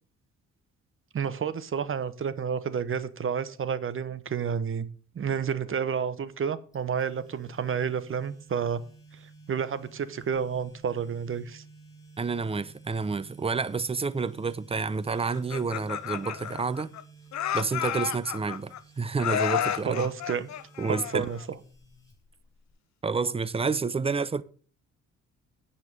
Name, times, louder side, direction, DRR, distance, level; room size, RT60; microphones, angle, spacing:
voice 1, 1.1-4.9 5.1-8.8 9.1-11.6 19.8-20.5 20.9-21.4, right 7 dB, 45° right, 1.0 m, -30 dB
sound 1, 6.7-22.7, right 4 dB, 10° left, 6.0 m, -53 dB
voice 2, 12.2-16.9 17.5-20.1 20.8-21.2 23.0-24.4, right 4 dB, 20° right, 0.7 m, -29 dB
Laughter, 15.3-17.0 17.3-18.8 19.2-21.5, left 10 dB, 65° left, 0.9 m, -31 dB
9.4 x 5.8 x 6.7 m
cardioid pair, 90°, 30 cm